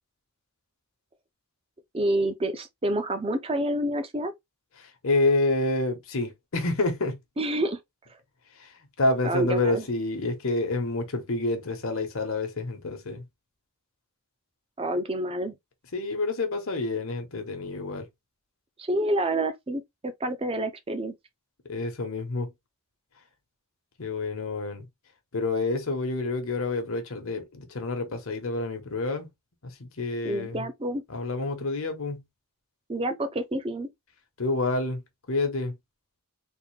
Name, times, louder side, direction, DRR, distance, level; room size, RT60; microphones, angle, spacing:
voice 1, 1.9-4.3 7.4-7.8 9.2-9.8 14.8-15.5 18.8-21.1 30.2-31.0 32.9-33.9, right 1 dB, 25° right, 0.6 m, -28 dB
voice 2, 4.8-7.2 8.6-8.7 9.0-13.2 15.9-18.1 21.6-22.5 24.0-24.9 25.3-29.3 29.6-30.6 31.1-32.2 34.4-35.0 35.3-35.7, left 2 dB, 65° left, 1.0 m, -28 dB
3.6 x 2.6 x 3.1 m
head